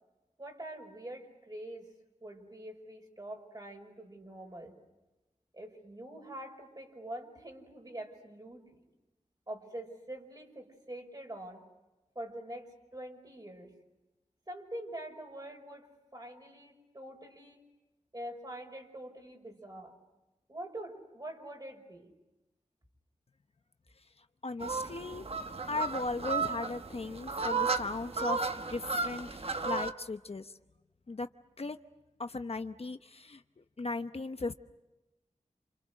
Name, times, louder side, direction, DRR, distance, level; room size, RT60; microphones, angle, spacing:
voice 1, 0.4-1.9 2.2-4.8 5.5-8.8 9.5-11.6 12.1-13.7 14.5-17.6 18.1-20.0 20.5-22.1, right 1 dB, 30° right, 3 dB, 5.7 m, -45 dB
voice 2, 24.4-25.3 25.7-28.4 28.7-30.5 31.1-31.3 31.6-31.8 32.2-34.5, left 3 dB, 50° left, 9 dB, 0.9 m, -37 dB
sound 1, 24.6-29.9, right 4 dB, 50° right, 1.2 m, -34 dB
29.0 x 29.0 x 6.5 m, 1.0 s
wide cardioid pair, 75°, 13 cm